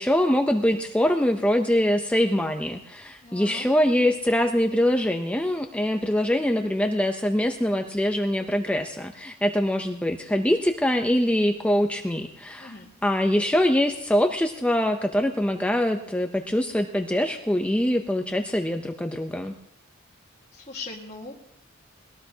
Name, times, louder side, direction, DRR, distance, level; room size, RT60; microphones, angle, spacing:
voice 1, 0.0-19.5, left 1 dB, 5° left, 4 dB, 0.6 m, -24 dB
voice 2, 3.2-3.7 12.6-12.9 20.5-21.3, left 3 dB, 35° left, -5 dB, 1.6 m, -39 dB
21.0 x 18.5 x 2.8 m, 0.77 s
head